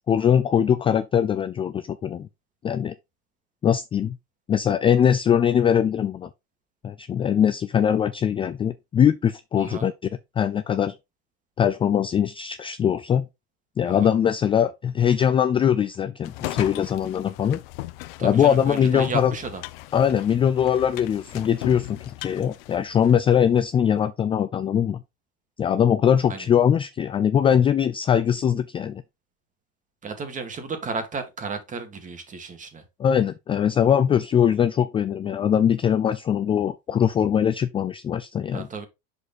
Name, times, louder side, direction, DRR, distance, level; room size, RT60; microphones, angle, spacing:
voice 1, 0.1-2.3 2.6-2.9 3.6-4.2 4.5-6.3 6.8-10.1 10.4-11.0 11.6-13.3 13.8-17.6 18.2-19.3 19.9-25.0 25.6-29.0 33.0-38.7, left 8 dB, 20° left, 0.3 m, -21 dB
voice 2, 9.6-9.9 13.9-14.1 18.2-19.6 26.3-26.5 30.0-32.8 38.5-38.9, right 4 dB, 25° right, 2.0 m, -33 dB
sound 1, 16.2-23.4, left 18 dB, 70° left, 0.7 m, -38 dB
6.5 x 5.0 x 4.1 m
supercardioid pair, 115°, 30 cm